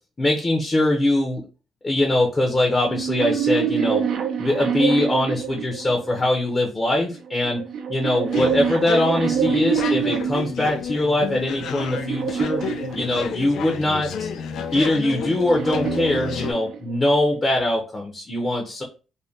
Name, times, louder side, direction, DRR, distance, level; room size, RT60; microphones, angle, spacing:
voice 1, 0.2-1.4 1.8-4.0 4.4-12.6 12.9-14.3 14.7-18.8, left 1 dB, 25° left, 1 dB, 0.7 m, -22 dB
sound 1, 2.8-6.2 7.1-10.5 11.2-13.6 14.7-17.1, right 7 dB, 70° right, 0.5 m, -26 dB
sound 2, 8.3-16.5, left 7 dB, 75° left, 0.4 m, -31 dB
2.6 x 2.1 x 3.5 m, 0.33 s
cardioid pair, 90°, 0 cm